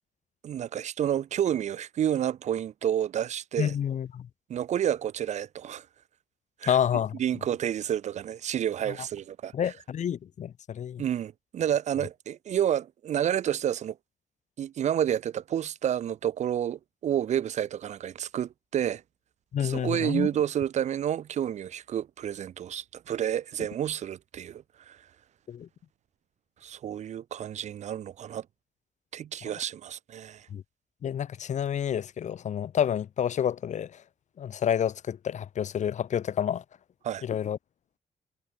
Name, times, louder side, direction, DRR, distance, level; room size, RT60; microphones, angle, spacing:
voice 1, 0.4-3.7 4.5-5.9 6.6-6.8 7.2-9.7 11.0-14.0 14.6-19.0 19.6-25.0 26.6-28.4 29.1-30.5 37.0-37.2, right 10 dB, 55° right, 0.5 m, -30 dB
voice 2, 3.6-4.3 6.7-7.2 9.5-11.0 19.5-20.3 25.5-25.7 30.5-30.6 31.0-33.9 34.4-36.6 37.2-37.6, left 9 dB, 60° left, 1.1 m, -29 dB
wide cardioid pair, 140°, 14 cm